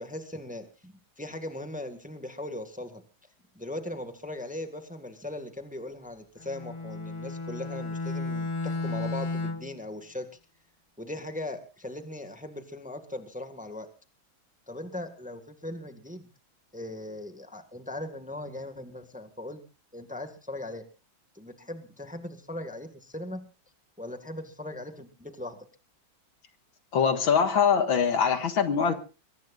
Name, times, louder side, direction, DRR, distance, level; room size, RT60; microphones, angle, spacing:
voice 1, 0.0-3.0 3.6-10.3 11.0-13.9 14.7-16.3 16.7-19.6 19.9-20.8 21.4-23.5 24.0-25.6, left 1 dB, 5° right, 8 dB, 1.6 m, -39 dB
Bowed string instrument, 6.4-9.8, left 3 dB, 30° left, 0.5 m, -33 dB
voice 2, 26.9-28.9, left 6 dB, 80° left, 8 dB, 2.5 m, -23 dB
23.0 x 18.5 x 2.5 m, 0.34 s
omnidirectional pair, 2.2 m